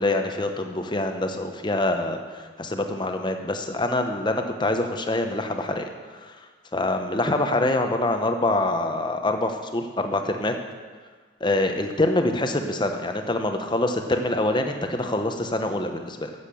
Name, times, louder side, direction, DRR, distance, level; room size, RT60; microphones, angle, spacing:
voice 1, 0.0-5.9 6.2-6.4 6.7-10.5 11.4-16.3, left 2 dB, 25° left, 5 dB, 0.9 m, -25 dB
10.0 x 8.1 x 6.9 m, 1.5 s
head